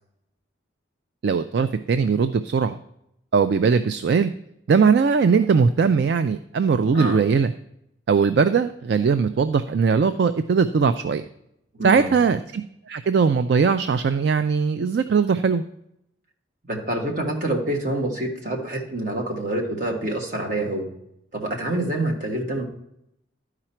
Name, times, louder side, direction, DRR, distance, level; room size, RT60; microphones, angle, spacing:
voice 1, 1.2-2.8 3.3-4.3 4.7-7.5 8.1-11.2 11.8-12.6 12.9-15.6, right 5 dB, 60° right, 11 dB, 0.3 m, -20 dB
voice 2, 11.7-12.1 16.7-20.9 21.3-22.6, right 1 dB, 40° right, 1 dB, 1.5 m, -26 dB
12.0 x 4.9 x 4.4 m, 0.79 s
head